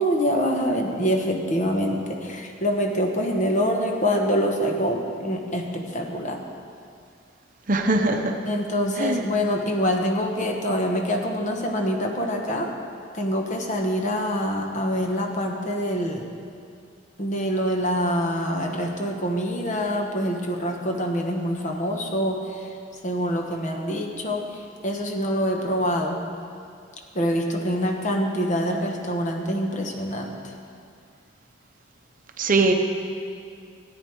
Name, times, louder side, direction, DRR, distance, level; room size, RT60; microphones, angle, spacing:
voice 1, 0.0-6.4 8.4-12.7 13.1-16.2 17.2-22.7 23.0-24.5 24.8-26.2 27.1-30.4, equal, 40° left, 2 dB, 1.1 m, -25 dB
voice 2, 7.7-8.3 9.0-9.2 32.4-32.7, right 2 dB, 45° right, 4 dB, 0.7 m, -21 dB
14.0 x 8.9 x 4.6 m, 2.3 s
head